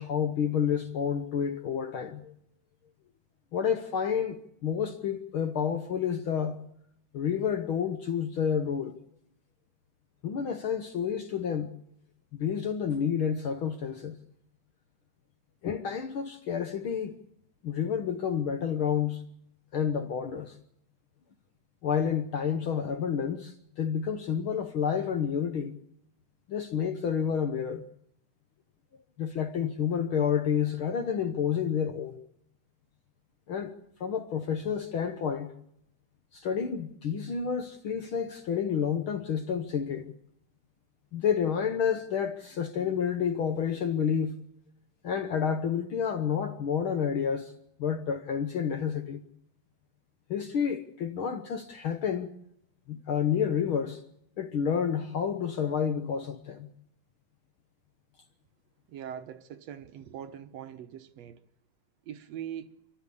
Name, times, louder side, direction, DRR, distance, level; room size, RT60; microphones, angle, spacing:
voice 1, 0.0-2.3 3.5-6.6 7.1-8.9 10.2-11.7 12.3-14.2 15.6-17.1 17.6-19.2 19.7-20.6 21.8-25.7 26.5-27.8 29.2-32.2 33.5-33.7 34.0-35.5 36.3-40.1 41.1-44.4 45.0-47.5 47.8-49.2 50.3-52.3 52.9-54.0 54.4-56.7, left 7 dB, 60° left, 1.5 m, -29 dB
voice 2, 58.9-61.4 62.1-62.8, right 9 dB, 70° right, 2.1 m, -42 dB
28.5 x 12.0 x 8.4 m
omnidirectional pair, 3.3 m